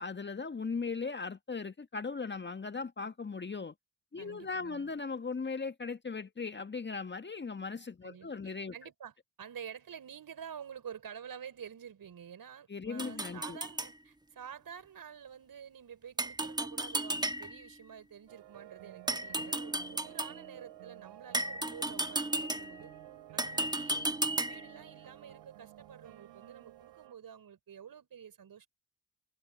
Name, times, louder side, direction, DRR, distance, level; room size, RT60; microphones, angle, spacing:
voice 1, 0.0-3.7 4.1-8.7 12.7-13.6, left 4 dB, 20° left, 1.7 m, -38 dB
voice 2, 4.2-4.9 8.0-22.9 23.3-28.7, right 8 dB, 45° right, 5.9 m, -49 dB
sound 1, 13.0-13.9 16.2-17.7 19.1-20.4 21.3-22.9 23.4-24.8, right 1 dB, 10° right, 1.7 m, -34 dB
sound 2, 18.3-27.1, right 15 dB, 60° right, 5.6 m, -53 dB
figure-of-eight pair, 40°, 48 cm